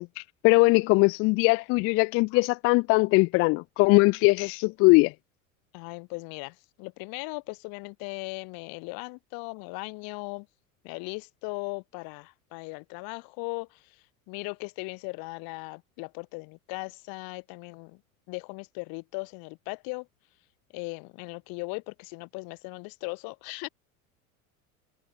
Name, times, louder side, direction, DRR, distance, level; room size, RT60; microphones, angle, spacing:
voice 1, 0.0-5.1, left 25 dB, 35° left, 0.4 m, -21 dB
voice 2, 5.7-10.5 10.8-18.0 18.3-20.1 20.7-23.7, left 31 dB, 55° left, 4.7 m, -38 dB
figure-of-eight pair, 70°, 43 cm